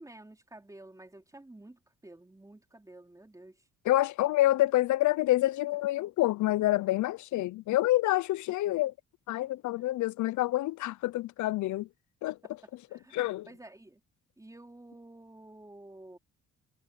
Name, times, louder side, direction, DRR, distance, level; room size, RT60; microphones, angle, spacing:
voice 1, 0.0-3.6 12.3-13.2 13.5-14.0 14.4-16.2, right 1 dB, 10° right, 4.2 m, -51 dB
voice 2, 3.9-8.9 9.3-11.9 12.2-12.3 13.1-13.5, left 16 dB, 75° left, 0.6 m, -27 dB
cardioid pair, 90°, 30 cm